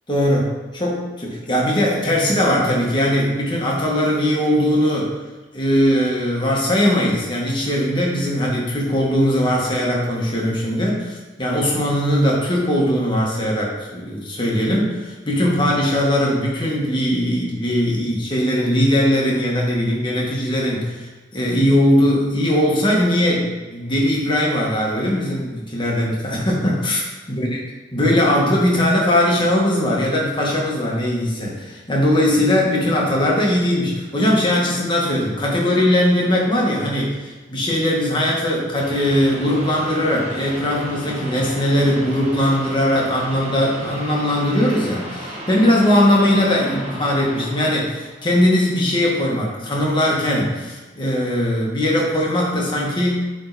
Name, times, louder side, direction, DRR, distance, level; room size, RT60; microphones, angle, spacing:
voice 1, 0.1-5.1 5.5-21.1 21.3-27.0 27.3-27.6 27.9-53.2, left 1 dB, 25° left, -3 dB, 1.6 m, -20 dB
sound 1, 38.8-49.0, right 1 dB, 35° right, 1.3 m, -34 dB
8.5 x 3.9 x 4.2 m, 1.2 s
head